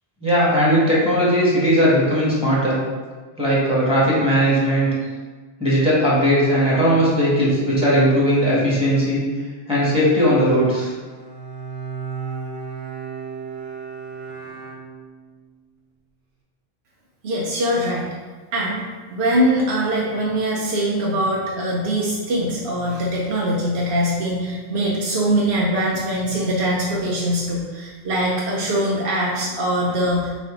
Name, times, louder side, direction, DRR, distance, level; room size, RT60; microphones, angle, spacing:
voice 1, 0.2-2.8 3.4-4.9 5.6-9.2 9.7-10.9, equal, 5° right, -8 dB, 1.3 m, -18 dB
Bowed string instrument, 11.0-15.4, right 5 dB, 55° right, 0.9 m, -34 dB
voice 2, 17.2-18.1 18.5-18.8 19.1-30.4, equal, 85° right, -4 dB, 1.0 m, -22 dB
5.2 x 2.6 x 3.7 m, 1.4 s
omnidirectional pair, 1.0 m